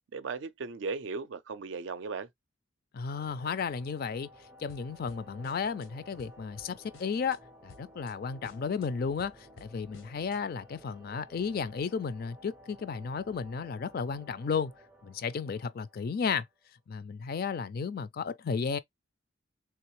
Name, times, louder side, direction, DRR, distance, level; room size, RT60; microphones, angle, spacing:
voice 1, 0.1-2.3, right 4 dB, 65° right, 0.5 m, -37 dB
voice 2, 2.9-4.3 4.6-14.7 15.0-16.5 16.9-18.8, left 5 dB, 45° left, 0.3 m, -33 dB
sound 1, 3.1-16.7, equal, 10° right, 0.5 m, -55 dB
sound 2, 4.7-5.9 6.2-7.4 7.7-8.1 8.4-10.4, left 3 dB, 90° left, 0.8 m, -56 dB
3.4 x 3.1 x 3.0 m
head